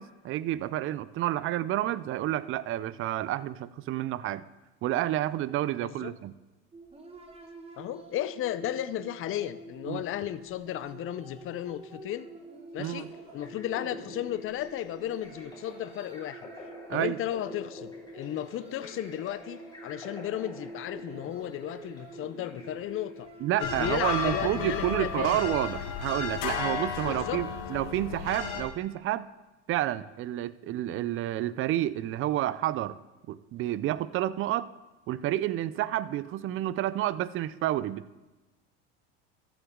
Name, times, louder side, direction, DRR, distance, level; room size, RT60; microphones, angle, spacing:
voice 1, 0.0-4.4 4.8-6.3 9.9-10.0 12.8-13.1 16.9-17.2 23.4-29.3 29.7-32.9 33.3-34.7 35.1-38.2, right 13 dB, 40° right, 18 dB, 0.4 m, -30 dB
sound 1, 6.7-26.3, right 2 dB, 15° right, 1.5 m, -47 dB
voice 2, 7.8-12.3 12.7-13.1 13.3-16.5 16.9-23.3 23.6-25.5 27.1-27.4, left 12 dB, 40° left, 15 dB, 0.6 m, -34 dB
sound 2, 12.8-23.3, left 2 dB, 10° left, 3.1 m, -48 dB
sound 3, 23.6-28.6, left 5 dB, 65° left, 1.5 m, -33 dB
14.0 x 7.1 x 3.7 m, 1.1 s
supercardioid pair, 100°, 34 cm